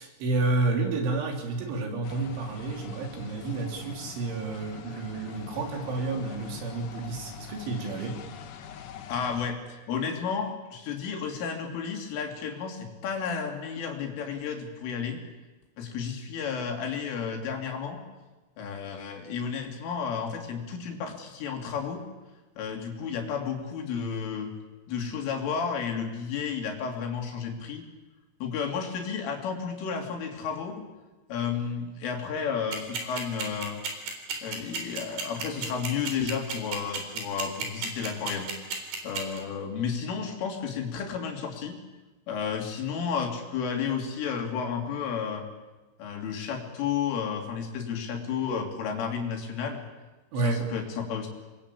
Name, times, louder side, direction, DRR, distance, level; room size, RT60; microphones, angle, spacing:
voice 1, 0.0-8.2 50.3-50.6, right 3 dB, 75° right, 3 dB, 5.8 m, -30 dB
sound 1, 2.0-9.5, left 8 dB, 65° left, 2.1 m, -44 dB
voice 2, 9.1-15.2 15.8-18.0 18.6-22.0 22.6-24.5 24.9-27.8 28.4-30.8 31.3-33.8 34.4-38.5 39.0-41.8 42.3-45.5 46.0-49.8 50.4-51.3, left 6 dB, 85° left, 3 dB, 5.8 m, -32 dB
sound 2, 32.7-39.4, right 6 dB, 55° right, 5.8 m, -31 dB
28.0 x 22.0 x 8.6 m, 1.2 s
omnidirectional pair, 5.6 m